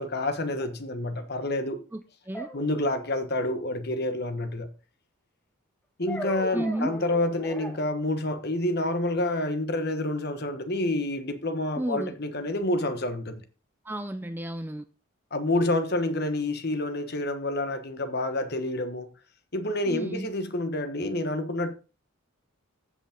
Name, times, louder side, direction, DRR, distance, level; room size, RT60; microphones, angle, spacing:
voice 1, 0.0-1.8 2.5-4.7 6.0-13.4 15.3-19.1 19.5-21.7, left 1 dB, 45° left, 1.3 m, -28 dB
sound 1, 0.6-0.7 2.3-3.3 6.1-7.8, right 1 dB, 5° left, 1.5 m, -38 dB
voice 2, 1.9-2.5 6.5-7.0 11.8-12.1 13.8-14.8 19.9-20.3, right 1 dB, 10° right, 0.4 m, -32 dB
15.5 x 5.3 x 3.7 m
head